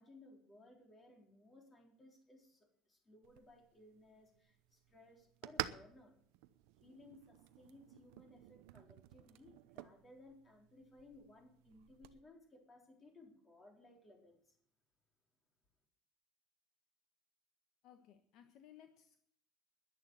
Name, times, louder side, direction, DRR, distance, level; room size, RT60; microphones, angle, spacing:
voice 1, 0.0-6.1 6.8-14.6, left 2 dB, 20° left, 1 dB, 3.8 m, -61 dB
sound 1, 3.2-12.2, right 16 dB, 85° right, 0.7 m, -50 dB
voice 2, 17.8-19.2, left 10 dB, 55° left, 7 dB, 1.3 m, -61 dB
11.0 x 10.5 x 9.3 m, 0.65 s
cardioid pair, 150°, 0 cm